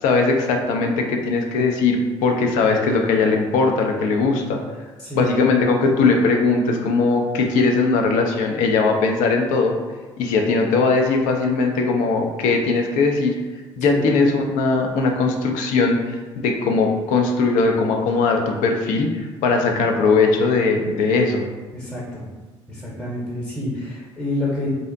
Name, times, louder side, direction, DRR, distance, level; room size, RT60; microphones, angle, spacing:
voice 1, 0.0-4.6 5.1-9.7 10.2-13.4 13.8-19.1 19.4-21.4, left 4 dB, 60° left, 3 dB, 0.4 m, -19 dB
voice 2, 5.0-5.4 13.8-14.1 21.7-22.2 22.7-24.7, left 1 dB, 5° left, -5 dB, 0.8 m, -28 dB
2.5 x 2.0 x 2.5 m, 1.3 s
figure-of-eight pair, 55°, 15 cm